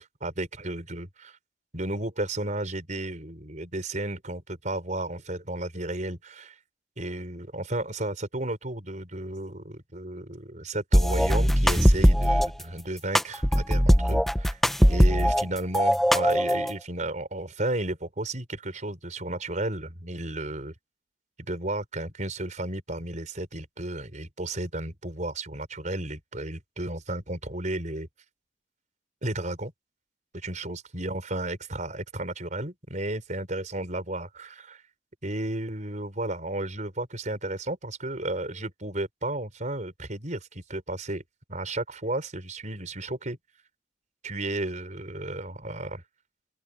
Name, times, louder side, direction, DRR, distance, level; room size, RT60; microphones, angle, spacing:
voice 1, 0.0-1.4 1.7-6.6 7.0-14.6 14.9-20.7 21.4-28.1 29.2-29.7 30.4-34.8 35.2-41.2 41.5-43.4 44.2-46.0, right 2 dB, 45° right, 5.2 m, -33 dB
sound 1, 10.9-12.5 13.1-15.4 15.7-16.7, equal, ahead, 0.6 m, -20 dB
head